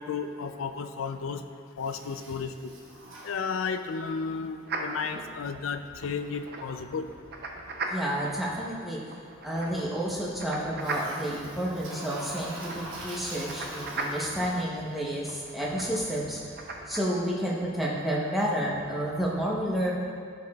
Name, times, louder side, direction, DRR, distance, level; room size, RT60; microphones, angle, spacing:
voice 1, 0.0-1.4 1.8-2.7 3.2-7.1, left 5 dB, 80° left, 9 dB, 0.4 m, -33 dB
Toilet flush, 1.8-4.0 10.8-14.9, right 1 dB, 70° right, 1.2 m, -43 dB
sound 1, 4.7-17.0, right 2 dB, 50° right, 0.6 m, -39 dB
voice 2, 7.9-9.0 9.4-16.5 16.9-19.9, equal, ahead, -5 dB, 0.9 m, -30 dB
14.0 x 4.8 x 2.4 m, 2.2 s
head